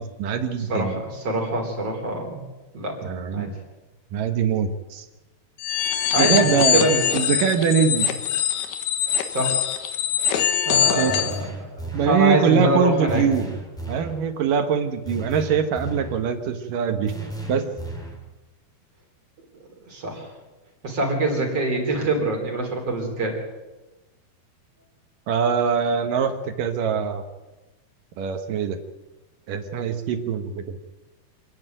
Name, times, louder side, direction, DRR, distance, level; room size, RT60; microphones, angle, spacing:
voice 1, 0.0-1.0 3.0-3.5 4.1-5.1 6.2-6.9 7.1-8.1 11.0-11.2 11.9-13.5 13.9-17.1 17.5-17.6 25.3-27.2 28.2-28.8 29.5-30.8, right 7 dB, 65° right, 8 dB, 2.7 m, -23 dB
voice 2, 0.7-2.4 2.7-3.0 3.3-3.5 5.9-7.1 9.2-9.6 10.7-11.4 11.9-13.2 19.9-20.3 20.8-23.4, right 1 dB, 40° right, 1 dB, 4.6 m, -24 dB
sound 1, 5.6-11.4, left 9 dB, 80° left, 3.4 m, -23 dB
sound 2, 11.1-12.3 13.1-14.2 15.1-16.3 17.1-18.3, right 1 dB, ahead, 2.8 m, -34 dB
27.0 x 10.5 x 9.2 m, 1.1 s
omnidirectional pair, 4.6 m